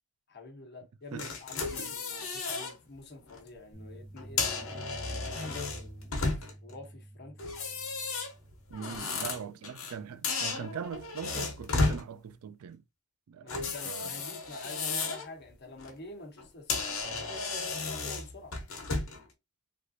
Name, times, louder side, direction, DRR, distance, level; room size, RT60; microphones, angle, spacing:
voice 1, 0.3-7.5 8.7-9.0 13.4-17.0 17.8-18.6, left 2 dB, 50° left, 1.0 m, -48 dB
sound 1, 1.2-2.7 3.2-3.4 4.2-6.7 7.4-10.0 10.2-12.0 13.5-15.3 15.7-15.9 16.4-16.5 16.7-19.2, left 3 dB, 70° left, 1.0 m, -33 dB
sound 2, 3.7-8.7, right 1 dB, 20° left, 1.3 m, -48 dB
voice 2, 8.7-12.8 13.3-14.1, right 7 dB, 85° right, 0.4 m, -41 dB
3.3 x 2.4 x 2.7 m
head